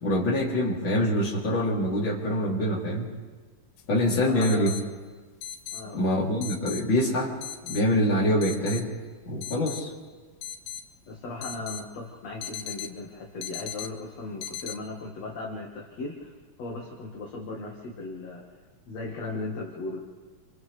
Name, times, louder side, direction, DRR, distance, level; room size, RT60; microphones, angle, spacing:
voice 1, 0.0-3.1 3.9-4.7 5.9-7.3 7.7-8.9 9.3-9.9, equal, 35° left, -4 dB, 3.8 m, -25 dB
sound 1, 3.8-3.9 4.4-4.8 5.4-5.8 6.4-6.8 7.4-7.8 8.4-8.8 9.4-9.8 10.4-10.8 11.4-11.8 12.4-13.0 13.4-13.9 14.4-14.7, left 9 dB, 80° left, 2.5 m, -37 dB
voice 2, 4.2-4.8 5.7-6.2 11.1-16.3 16.6-18.4 18.9-20.0, left 2 dB, 50° left, -3 dB, 2.8 m, -37 dB
29.0 x 27.5 x 3.4 m, 1.4 s
omnidirectional pair, 4.1 m